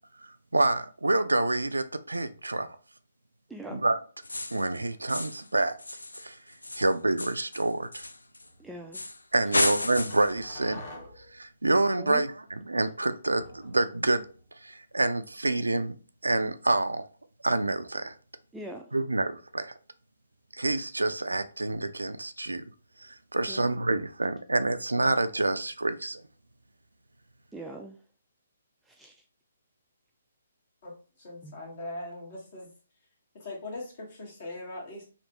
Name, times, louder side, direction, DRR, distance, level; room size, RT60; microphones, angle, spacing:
voice 1, 0.5-2.7 3.7-4.0 4.5-5.8 6.2-6.4 6.8-8.1 9.3-10.9 11.3-14.2 14.6-16.0 16.2-17.1 17.4-18.1 18.9-19.7 20.5-22.6 23.0-26.2, right 2 dB, 85° right, 0.3 m, -27 dB
voice 2, 3.5-3.8 8.6-9.0 12.0-12.2 18.5-18.8 23.5-23.7 27.5-28.0 28.9-29.2 31.4-31.5, right 1 dB, 5° right, 0.3 m, -41 dB
sound 1, 4.2-4.7 5.1-5.5 5.8-8.5 8.9-9.2 9.5-10.4, left 2 dB, 85° left, 0.3 m, -32 dB
sound 2, 8.4-8.7 10.1-11.4 13.2-14.4, left 1 dB, 30° left, 1.1 m, -47 dB
voice 3, 30.8-32.7 33.3-35.0, left 2 dB, 50° left, 1.6 m, -40 dB
3.3 x 2.4 x 2.9 m
figure-of-eight pair, 135°, 0 cm